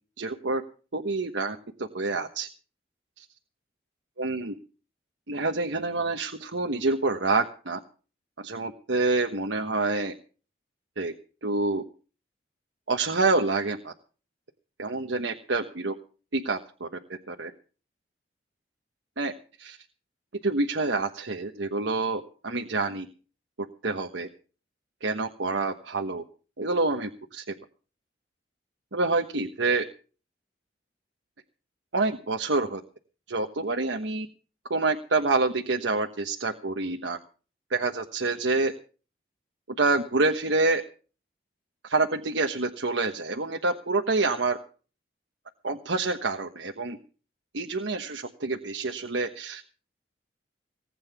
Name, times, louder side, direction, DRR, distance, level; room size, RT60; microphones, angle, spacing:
voice 1, 0.2-0.6 0.9-2.5 3.2-3.3 4.2-4.5 5.3-7.8 8.4-10.1 11.0-11.1 11.4-11.8 12.9-13.9 14.8-15.9 16.3-16.9 17.3-17.5 19.2-19.3 19.6-19.8 20.4-23.1 23.8-24.3 25.0-26.2 26.6-27.4 28.9-29.8 31.9-32.8 33.3-34.3 34.7-37.2 37.7-38.7 39.8-40.8 41.8-44.6 45.6-47.0 47.5-49.6, right 3 dB, 85° right, 3 dB, 1.3 m, -27 dB
19.5 x 8.9 x 6.0 m, 0.39 s
head